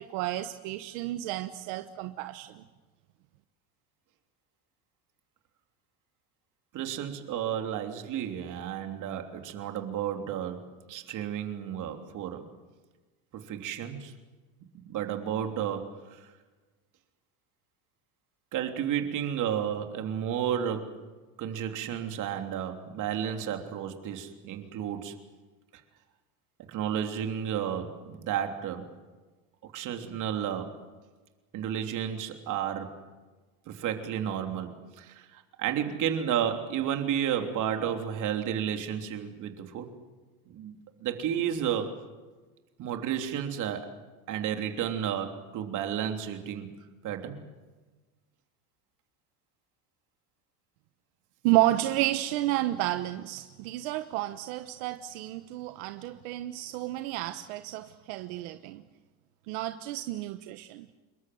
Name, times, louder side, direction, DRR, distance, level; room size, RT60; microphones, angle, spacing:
voice 1, 0.0-2.6 51.4-58.8 59.5-60.9, right 15 dB, 80° right, 9 dB, 1.2 m, -31 dB
voice 2, 6.7-12.5 13.3-14.1 14.9-16.3 18.5-21.0 21.4-25.2 26.7-28.9 29.6-30.8 31.5-33.0 33.7-39.9 40.5-42.0 42.8-44.0 44.3-46.7 47.0-47.4, right 9 dB, 50° right, 5 dB, 3.2 m, -32 dB
27.0 x 22.0 x 7.8 m, 1.3 s
cardioid pair, 140°, 40 cm